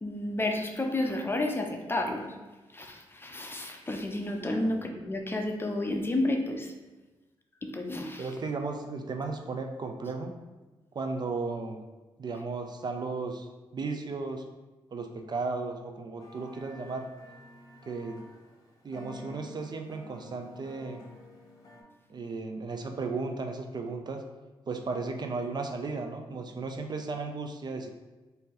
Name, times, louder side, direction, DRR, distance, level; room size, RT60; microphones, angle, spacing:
voice 1, 0.0-2.4 2.7-6.7 7.6-8.3, left 1 dB, 20° left, 3 dB, 0.6 m, -31 dB
voice 2, 8.2-10.4 10.9-11.8 12.2-13.5 13.7-14.5 14.9-17.1 17.9-18.2 18.8-21.0 22.1-24.2 24.7-27.9, right 3 dB, 45° right, 5 dB, 0.5 m, -35 dB
sound 1, 16.2-21.8, left 1 dB, 35° left, 1.0 m, -50 dB
4.0 x 2.7 x 3.8 m, 1.2 s
cardioid pair, 70°, 10 cm